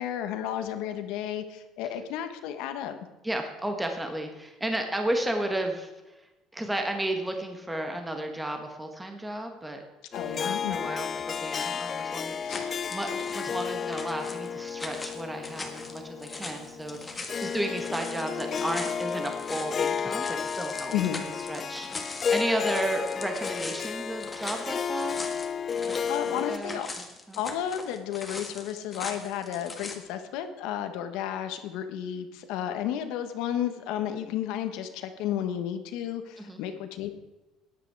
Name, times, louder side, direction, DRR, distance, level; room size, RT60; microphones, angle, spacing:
voice 1, 0.0-3.0 10.1-10.9 12.4-12.7 20.9-21.2 25.8-26.9 27.4-37.1, left 10 dB, 80° left, 8 dB, 1.3 m, -32 dB
voice 2, 3.2-5.9 6.5-9.8 10.2-20.9 21.2-25.2 25.9-26.0 26.3-26.9 27.3-27.4 36.4-36.6, right 1 dB, 5° right, 4 dB, 1.3 m, -33 dB
Harp, 10.1-26.6, left 7 dB, 35° left, 0.3 m, -32 dB
sound 1, 12.5-30.0, left 3 dB, 15° left, 1.7 m, -41 dB
13.5 x 10.0 x 4.7 m, 1.1 s
cardioid pair, 135°, 0 cm